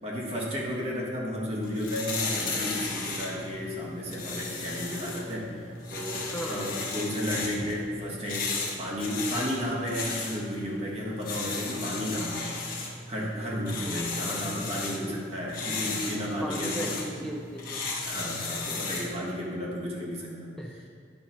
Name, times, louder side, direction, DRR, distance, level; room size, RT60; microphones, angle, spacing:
voice 1, 0.0-8.5 8.8-12.8 13.1-16.9 17.2-17.3 18.0-20.3, equal, 35° right, -3 dB, 1.4 m, -33 dB
sound 1, 1.5-19.2, left 4 dB, 50° left, 1.2 m, -35 dB
voice 2, 6.3-7.2 13.8-14.4 16.4-17.8 20.6-20.9, equal, ahead, -1 dB, 0.4 m, -37 dB
10.0 x 5.6 x 2.9 m, 2.1 s
head